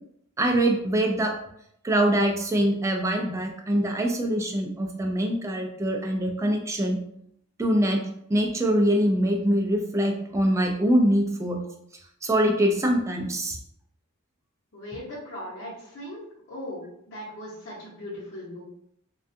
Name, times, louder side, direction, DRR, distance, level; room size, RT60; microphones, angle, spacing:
voice 1, 0.4-1.4 1.8-7.0 7.6-8.0 8.3-11.6 12.2-13.6, right 1 dB, 15° right, 2 dB, 0.3 m, -23 dB
voice 2, 14.7-16.2 16.5-18.7, left 1 dB, 55° left, -10 dB, 0.8 m, -38 dB
2.5 x 2.3 x 2.6 m, 0.74 s
head